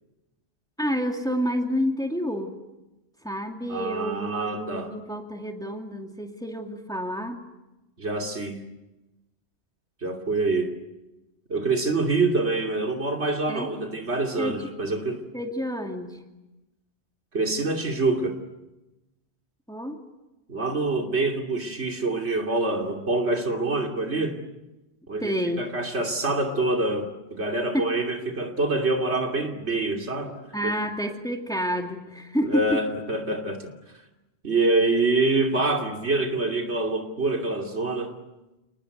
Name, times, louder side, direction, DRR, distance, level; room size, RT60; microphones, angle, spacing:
voice 1, 0.8-2.6 3.2-7.4 13.5-13.7 14.4-14.6 15.3-16.2 19.7-20.0 25.2-25.7 27.7-27.9 30.5-32.8, equal, 5° left, 3 dB, 2.5 m, -29 dB
voice 2, 3.7-4.9 8.0-8.6 10.0-10.7 11.5-15.3 17.3-18.4 20.5-24.4 25.1-25.3 25.6-30.4 30.7-30.8 32.4-33.7 34.4-38.2, right 2 dB, 85° right, 3 dB, 3.1 m, -26 dB
29.0 x 20.0 x 9.5 m, 1.0 s
omnidirectional pair, 1.1 m